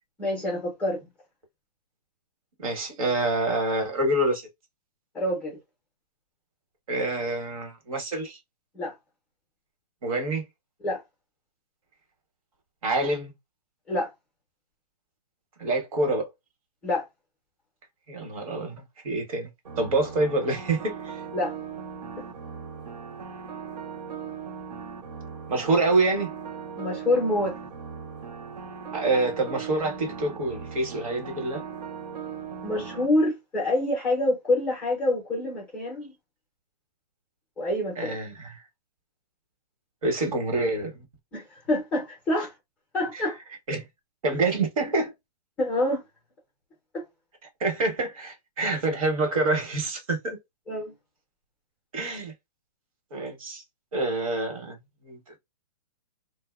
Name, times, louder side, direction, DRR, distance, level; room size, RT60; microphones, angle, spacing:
voice 1, 0.2-1.0 5.1-5.6 8.7-8.9 10.8-11.0 13.9-14.1 16.8-17.0 21.3-21.5 26.8-27.6 32.6-36.1 37.6-38.2 41.3-42.5 42.9-43.4 45.6-46.0 46.9-47.0 50.7-50.9, left 1 dB, 5° left, 0.6 m, -26 dB
voice 2, 2.6-4.5 6.9-8.4 10.0-10.4 12.8-13.3 15.6-16.3 18.1-19.5 19.8-21.2 25.5-26.3 28.9-31.6 38.0-38.6 40.0-41.0 43.1-43.2 43.7-43.8 44.2-45.1 47.6-50.4 51.9-52.3 53.1-53.6 53.9-54.8 55.0-55.2, right 2 dB, 55° right, 1.0 m, -26 dB
sound 1, 19.7-33.1, right 6 dB, 85° right, 0.7 m, -39 dB
2.6 x 2.0 x 2.3 m
hypercardioid pair, 165°, 21 cm